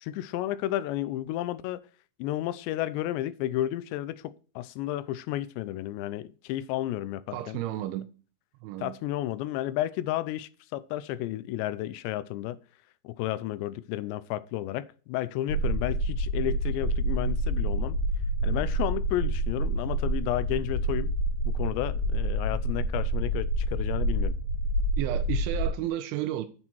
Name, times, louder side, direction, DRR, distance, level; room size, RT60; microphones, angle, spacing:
voice 1, 0.0-1.8 2.2-7.6 8.8-12.6 13.0-18.0 18.4-21.1 21.5-24.3, left 14 dB, 80° left, 2.7 m, -32 dB
voice 2, 7.3-8.1 8.6-8.9 25.0-26.5, right 13 dB, 90° right, 3.1 m, -32 dB
sound 1, 15.5-25.7, right 1 dB, 45° left, 4.5 m, -28 dB
8.1 x 7.4 x 4.5 m
omnidirectional pair, 5.3 m